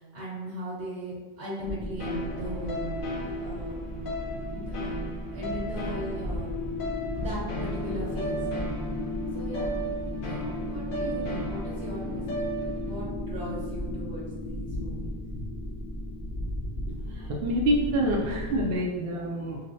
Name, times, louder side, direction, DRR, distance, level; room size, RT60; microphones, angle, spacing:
voice 1, 0.0-2.9 3.4-3.8 4.5-4.9 5.3-6.5 7.2-8.4 9.3-9.7 10.1-15.2, equal, 90° right, -8 dB, 1.7 m, -38 dB
sound 1, 1.6-18.8, left 1 dB, 15° left, 0.6 m, -34 dB
sound 2, 2.0-13.0, right 1 dB, 55° left, 0.8 m, -36 dB
voice 2, 17.1-19.6, equal, 65° right, -2 dB, 0.8 m, -27 dB
5.4 x 2.1 x 2.6 m, 1.3 s
omnidirectional pair, 1.1 m